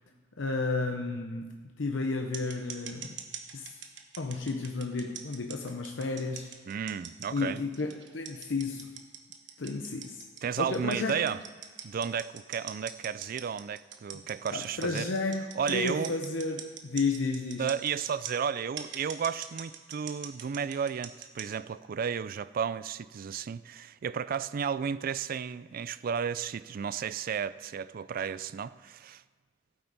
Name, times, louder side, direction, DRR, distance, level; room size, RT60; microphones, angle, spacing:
voice 1, 0.4-3.2 3.5-3.9 4.2-6.5 7.3-8.9 9.6-10.2 10.6-11.2 14.5-17.7, left 3 dB, 70° left, 0.8 m, -32 dB
sound 1, 2.3-18.3 18.8-21.5, right 9 dB, 65° right, 1.0 m, -42 dB
voice 2, 6.7-7.6 10.4-11.4 11.8-15.1 15.6-16.1 17.6-29.2, right 7 dB, 50° right, 0.3 m, -33 dB
15.5 x 9.0 x 4.0 m
head